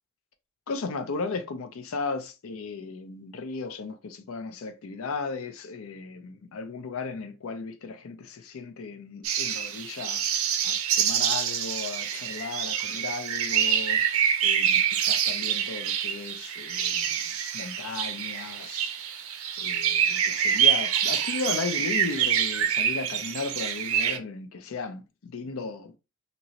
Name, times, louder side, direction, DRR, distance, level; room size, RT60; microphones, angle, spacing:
voice 1, 0.7-19.2 19.6-26.0, left 4 dB, 70° left, 0.5 m, -36 dB
sound 1, 9.2-24.2, right 8 dB, 70° right, 0.5 m, -26 dB
2.9 x 2.5 x 2.8 m
head